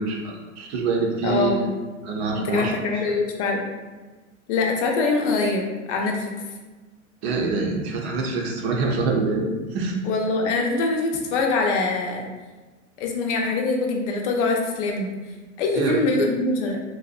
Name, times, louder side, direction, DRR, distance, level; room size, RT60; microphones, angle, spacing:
voice 1, 0.0-1.7 2.0-2.7 7.2-9.9 15.7-16.0, right 3 dB, 55° right, 0 dB, 0.6 m, -25 dB
voice 2, 1.2-1.7 2.4-3.7 4.5-6.3 10.0-12.3 13.0-15.1 15.6-16.8, left 3 dB, 60° left, 1 dB, 0.6 m, -24 dB
2.6 x 2.1 x 2.3 m, 1.2 s
hypercardioid pair, 105°, 40 cm